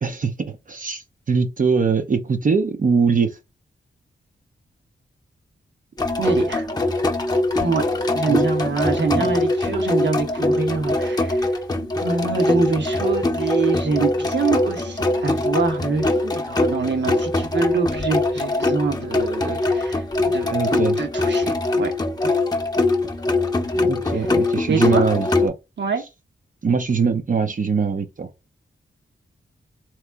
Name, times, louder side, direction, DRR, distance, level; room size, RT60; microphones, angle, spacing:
voice 1, 0.0-3.4 8.3-8.4 9.1-9.3 20.5-21.0 23.7-25.5 26.6-28.3, right 5 dB, 45° right, 0.6 m, -22 dB
sound 1, 6.0-25.5, left 2 dB, 20° left, 0.8 m, -22 dB
voice 2, 6.2-6.7 7.6-7.8 8.1-11.5 12.0-21.9 24.1-24.2 24.7-25.1 25.8-26.0, right 4 dB, 65° right, 1.2 m, -25 dB
3.6 x 3.1 x 3.4 m
cardioid pair, 60°, 20 cm